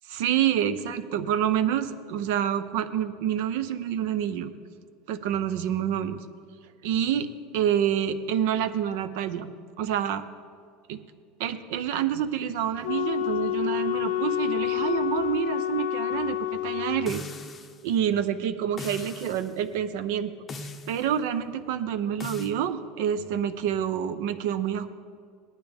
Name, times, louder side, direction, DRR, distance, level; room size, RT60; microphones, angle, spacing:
voice 1, 0.1-4.5 5.1-6.2 6.8-9.5 9.8-10.2 10.9-11.0 11.4-17.2 17.8-20.3 20.6-24.9, right 9 dB, 70° right, 12 dB, 0.7 m, -27 dB
Wind instrument woodwind instrument, 12.8-17.1, left 13 dB, 90° left, 0.4 m, -28 dB
sound 1, 17.1-17.8 18.8-19.5 20.5-21.1 22.2-22.5, left 3 dB, 20° left, 0.7 m, -39 dB
18.5 x 11.5 x 3.5 m, 2.2 s
supercardioid pair, 155°, 0 cm